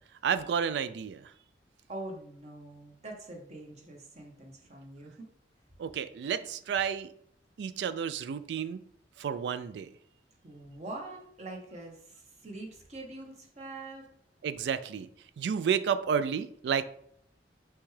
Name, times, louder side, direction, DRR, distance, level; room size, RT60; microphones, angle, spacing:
voice 1, 0.2-1.3 5.8-7.1 7.6-8.8 9.2-9.9 14.4-15.1 15.4-16.9, right 7 dB, 70° right, 13 dB, 0.3 m, -31 dB
voice 2, 1.9-5.3 10.4-14.1, right 2 dB, 40° right, 1 dB, 1.0 m, -44 dB
6.1 x 2.3 x 3.2 m, 0.66 s
head